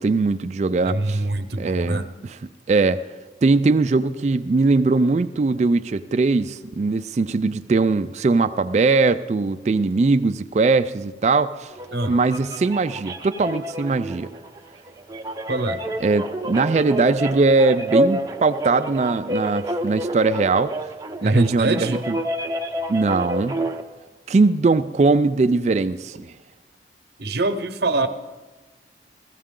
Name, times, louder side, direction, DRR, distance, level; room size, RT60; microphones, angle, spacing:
voice 1, 0.0-1.2 1.6-2.4 2.7-3.0 3.4-11.7 12.1-14.3 16.0-20.7 21.2-22.2 22.9-23.6 24.3-26.3, right 3 dB, 40° right, 11 dB, 0.3 m, -20 dB
voice 2, 0.8-2.1 11.9-12.1 15.5-15.8 21.2-22.1 27.2-28.1, right 2 dB, 65° right, 8 dB, 0.9 m, -23 dB
sound 1, 11.7-23.8, right 1 dB, 20° right, 0.7 m, -29 dB
15.5 x 15.0 x 3.7 m, 1.2 s
head